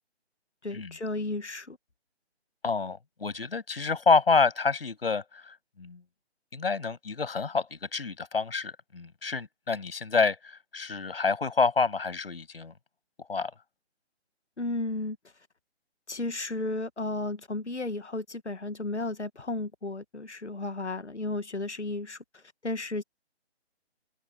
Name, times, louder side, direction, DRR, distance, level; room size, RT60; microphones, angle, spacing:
voice 1, 0.6-1.8 14.6-15.2 16.1-23.0, left 2 dB, 80° left, 1.7 m, -34 dB
voice 2, 2.6-6.0 6.5-12.7 13.3-13.5, left 4 dB, 60° left, 7.1 m, -28 dB
open air
figure-of-eight pair, 145°, 34 cm